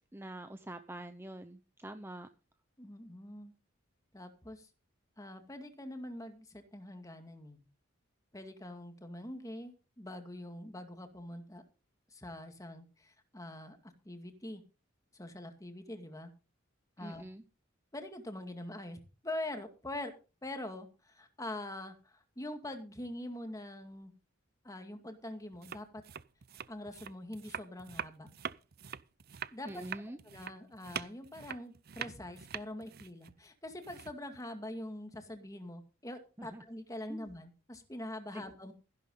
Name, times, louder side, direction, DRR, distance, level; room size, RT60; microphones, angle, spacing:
voice 1, 0.1-2.3 17.0-17.4 29.6-30.2 36.4-36.6 37.1-37.3 38.3-38.4, right 1 dB, 10° right, 9 dB, 0.8 m, -45 dB
voice 2, 2.8-3.5 4.1-4.7 5.2-7.6 8.3-11.6 12.1-14.6 15.1-16.3 17.0-17.2 17.9-20.1 20.4-24.1 24.6-26.0 26.7-28.3 29.5-29.8 30.3-38.7, left 1 dB, 15° left, 6 dB, 2.1 m, -44 dB
sound 1, 25.5-34.4, right 8 dB, 50° right, 0.6 m, -44 dB
15.0 x 11.5 x 3.9 m, 0.32 s
head